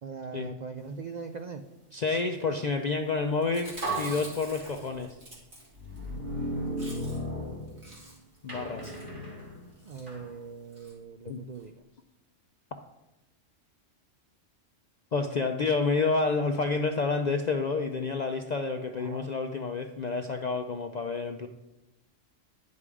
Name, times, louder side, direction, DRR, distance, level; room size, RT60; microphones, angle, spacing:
voice 1, 0.0-1.6 9.9-11.7 19.0-19.3, right 5 dB, 75° right, 7 dB, 0.4 m, -40 dB
voice 2, 1.9-5.1 8.4-8.9 11.3-11.4 15.1-21.5, left 4 dB, 60° left, 5 dB, 0.4 m, -29 dB
sound 1, 3.2-3.4 3.8-5.1 5.7-8.1 8.5-10.3, right 1 dB, 40° right, 2.3 m, -35 dB
Chewing mastication, 3.4-6.1 6.4-6.5 6.7-7.4 7.7-8.4 8.8-9.1 9.8-10.1 10.7-10.9 11.3-11.4 11.6-11.7, right 1 dB, 55° right, 2.6 m, -47 dB
9.7 x 5.5 x 4.8 m, 0.99 s
omnidirectional pair, 1.3 m